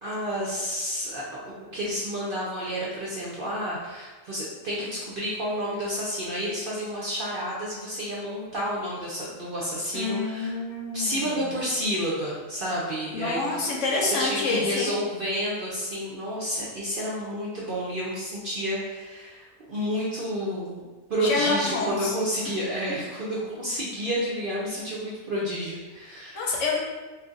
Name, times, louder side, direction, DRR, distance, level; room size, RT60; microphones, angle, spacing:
voice 1, 0.0-10.5 10.9-13.7 14.0-20.8 21.1-26.5, equal, 60° right, -6 dB, 0.5 m, -30 dB
voice 2, 9.9-11.4 13.1-14.9 21.2-22.1 26.3-26.8, left 3 dB, 65° left, -2 dB, 0.9 m, -27 dB
2.5 x 2.4 x 3.7 m, 1.3 s
omnidirectional pair, 1.4 m